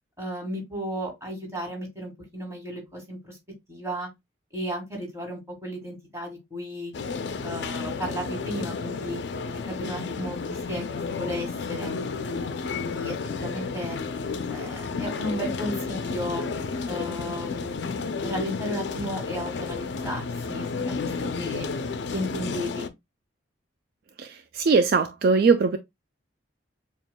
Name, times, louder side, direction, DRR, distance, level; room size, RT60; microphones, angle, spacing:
voice 1, 0.2-3.4 3.7-4.1 4.5-6.9 7.4-9.2 9.7-12.0 12.8-14.0 14.5-16.5 16.9-18.0 18.2-21.0 21.3-21.7 22.1-22.9, equal, 15° right, 1.7 m, -34 dB
sound 1, 6.9-22.9, left 4 dB, 65° left, 0.5 m, -32 dB
voice 2, 24.2-25.8, right 4 dB, 55° right, 0.3 m, -21 dB
7.0 x 2.4 x 2.2 m
head